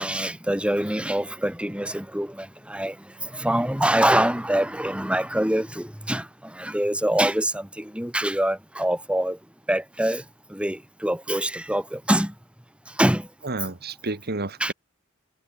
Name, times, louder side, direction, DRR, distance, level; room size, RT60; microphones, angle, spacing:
voice 1, 0.0-2.9 3.2-9.4 9.7-10.2 10.5-12.3 13.0-13.3 14.6-14.7, right 1 dB, 5° right, 3.1 m, -25 dB
voice 2, 13.4-14.7, right 2 dB, 45° right, 1.8 m, -30 dB
head